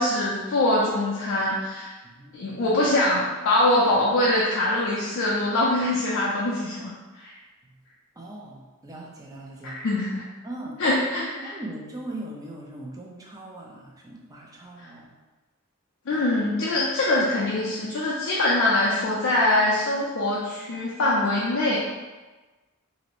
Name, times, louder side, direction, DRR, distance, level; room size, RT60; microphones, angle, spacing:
voice 1, 0.0-1.9 2.3-7.3 9.6-10.2 10.8-11.5 14.8-14.9 16.1-21.8, left 1 dB, 60° left, -6 dB, 0.4 m, -23 dB
voice 2, 2.0-2.5 8.2-9.8 10.4-10.8 11.4-15.1 16.1-16.2, right 1 dB, 15° right, -2 dB, 0.4 m, -40 dB
2.6 x 2.0 x 2.8 m, 1.2 s
head